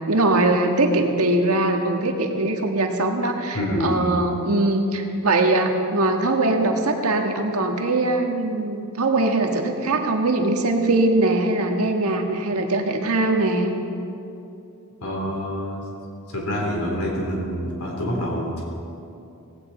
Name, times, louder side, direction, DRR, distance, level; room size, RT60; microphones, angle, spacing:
voice 1, 0.0-13.7, right 2 dB, 90° right, 3 dB, 1.6 m, -21 dB
voice 2, 3.5-4.0 15.0-15.8 16.3-18.6, equal, 90° left, -1 dB, 3.8 m, -26 dB
18.0 x 16.0 x 4.4 m, 2.7 s
head